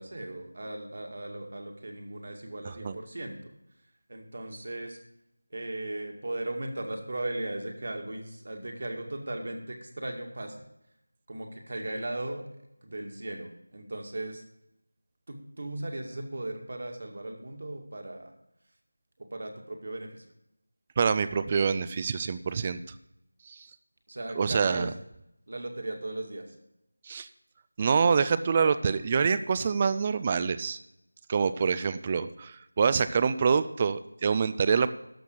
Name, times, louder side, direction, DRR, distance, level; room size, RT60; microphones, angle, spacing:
voice 1, 0.0-3.5 4.1-5.0 5.5-10.6 11.3-12.4 12.8-14.4 15.3-18.3 19.2-20.2 24.1-24.9 25.5-26.5, right 1 dB, 50° right, 3 dB, 2.1 m, -37 dB
voice 2, 2.7-3.0 21.0-22.8 23.5-23.7 24.4-24.9 27.1-27.3 27.8-30.8 31.3-34.9, right 5 dB, 20° right, 13 dB, 0.4 m, -26 dB
13.0 x 6.0 x 6.4 m, 0.82 s
figure-of-eight pair, 170°, 0 cm